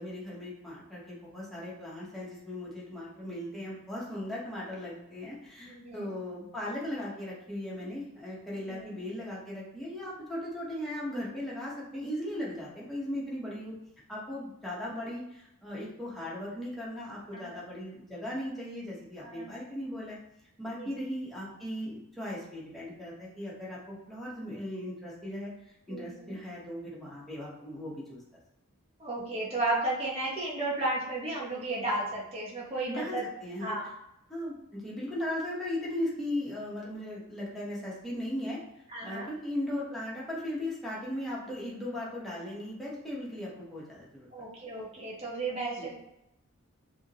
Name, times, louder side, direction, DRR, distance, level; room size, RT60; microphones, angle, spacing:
voice 1, 0.0-13.7 14.1-20.2 20.6-23.8 24.1-28.2 32.9-33.8 34.3-38.6 39.0-44.3 45.8-45.9, left 1 dB, ahead, -7 dB, 1.3 m, -37 dB
voice 2, 5.6-6.1 8.5-8.9 17.3-17.6 19.2-19.5 20.8-20.9 25.9-26.4 29.0-33.3 33.6-33.9 38.9-39.3 44.3-45.9, right 2 dB, 30° right, -6 dB, 1.4 m, -34 dB
5.4 x 3.0 x 3.0 m, 0.84 s
head